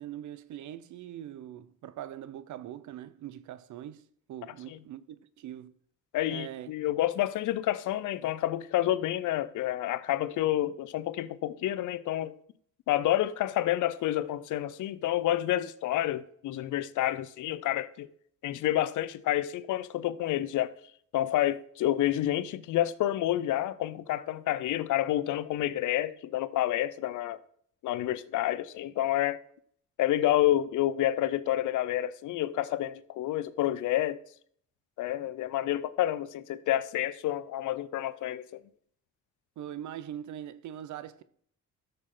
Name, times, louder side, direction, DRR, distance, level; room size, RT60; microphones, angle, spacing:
voice 1, 0.0-4.0 4.3-5.7 6.3-6.7 39.6-41.2, right 11 dB, 75° right, 0.8 m, -42 dB
voice 2, 6.1-12.4 12.9-18.1 18.4-20.7 21.1-27.4 27.8-29.4 30.0-34.2 35.0-38.6, left 13 dB, 80° left, 0.7 m, -29 dB
13.0 x 6.7 x 3.9 m
cardioid pair, 90°, 30 cm